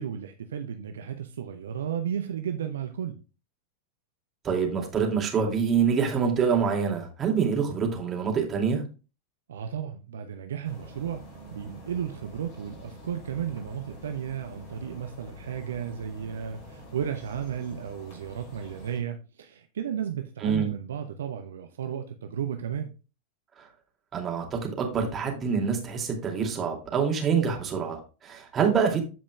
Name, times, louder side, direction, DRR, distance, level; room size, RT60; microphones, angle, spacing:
voice 1, 0.0-3.2 9.5-11.2 11.5-22.9, right 8 dB, 65° right, 0.7 m, -34 dB
voice 2, 4.4-8.8 20.4-20.7 23.6-23.7 24.1-29.0, right 6 dB, 25° right, 2.7 m, -26 dB
sound 1, 10.6-19.0, equal, 40° left, 4.3 m, -47 dB
15.0 x 5.1 x 2.4 m
figure-of-eight pair, 90°, 0 cm